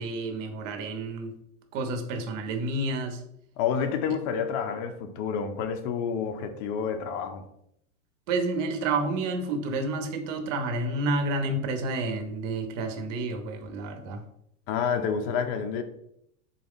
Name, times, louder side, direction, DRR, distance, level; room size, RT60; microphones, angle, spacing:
voice 1, 0.0-1.3 1.7-3.2 8.3-14.2, right 2 dB, 70° right, 0.9 m, -30 dB
voice 2, 3.6-7.4 14.7-15.8, left 7 dB, 50° left, 0.6 m, -29 dB
3.8 x 2.3 x 3.5 m
supercardioid pair, 125°, 39 cm